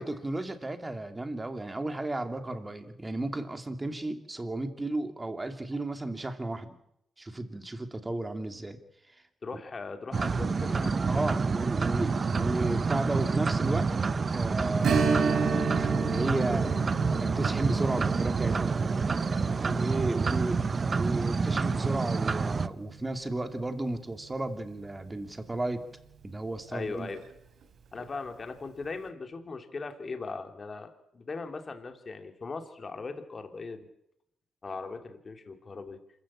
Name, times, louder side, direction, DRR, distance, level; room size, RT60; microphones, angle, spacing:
voice 1, 0.0-6.7 7.2-8.8 9.1-9.2 11.1-13.9 14.3-16.7 17.2-18.8 19.4-25.8 26.2-27.1, right 2 dB, 20° right, 7 dB, 2.7 m, -34 dB
voice 2, 9.4-11.1 26.7-27.3 27.9-30.9 31.1-33.9 34.6-36.0, left 4 dB, 35° left, 6 dB, 2.8 m, -39 dB
sound 1, 10.1-22.7, right 4 dB, 40° right, 0.8 m, -28 dB
Strum, 14.8-24.0 24.3-24.4 27.0-27.2 27.6-27.7, right 5 dB, 70° right, 3.5 m, -33 dB
26.5 x 15.0 x 8.7 m, 0.80 s
cardioid pair, 90°, 0 cm